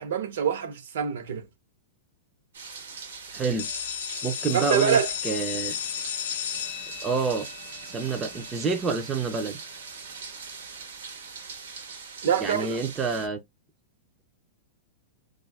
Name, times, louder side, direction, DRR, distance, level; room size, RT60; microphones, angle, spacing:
voice 1, 0.0-1.4 4.5-5.1 12.2-12.8, right 7 dB, 65° right, 0.6 m, -25 dB
sound 1, 2.5-13.3, right 5 dB, 90° right, 1.0 m, -41 dB
voice 2, 3.3-3.7 4.2-5.7 7.0-7.5 7.9-9.6 12.4-13.4, right 5 dB, 10° right, 0.3 m, -28 dB
sound 2, 3.6-9.2, left 11 dB, 60° left, 0.4 m, -34 dB
2.5 x 2.3 x 3.3 m
supercardioid pair, 175°, 0 cm